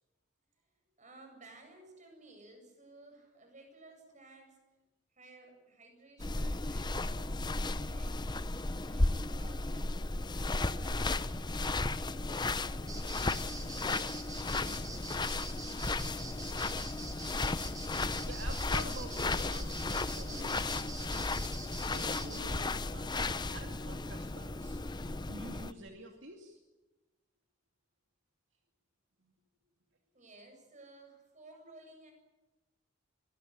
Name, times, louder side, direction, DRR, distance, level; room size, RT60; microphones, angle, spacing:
voice 1, 1.0-4.6 5.1-8.2 8.7-10.0 10.6-16.9 30.1-32.1, right 2 dB, 40° right, 4 dB, 7.7 m, -57 dB
sound 1, 6.2-25.7, left 2 dB, 25° left, 0.8 m, -34 dB
sound 2, 12.9-22.4, right 3 dB, 20° right, 3.4 m, -46 dB
voice 2, 18.2-21.2 21.8-24.8 25.2-26.6, right 2 dB, 65° right, 3 dB, 2.5 m, -48 dB
25.0 x 19.0 x 9.9 m, 1.1 s
head